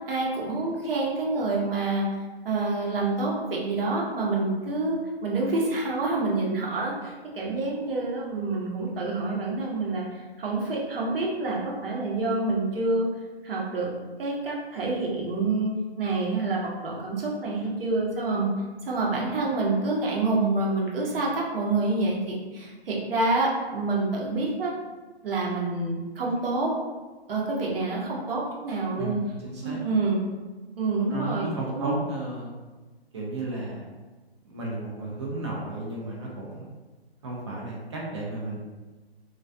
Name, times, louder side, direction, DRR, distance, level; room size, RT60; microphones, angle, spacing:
voice 1, 0.1-2.0 2.4-13.1 13.4-13.9 14.2-15.7 16.0-18.5 18.8-24.7 25.2-26.7 27.3-29.2 29.6-30.2 30.8-31.9, right 3 dB, 60° right, -3 dB, 0.7 m, -27 dB
voice 2, 29.0-29.9 31.1-32.5 33.1-33.8 34.5-36.7 37.2-38.6, right 2 dB, 30° right, -4 dB, 0.4 m, -33 dB
2.3 x 2.2 x 2.5 m, 1.3 s
hypercardioid pair, 145°, 32 cm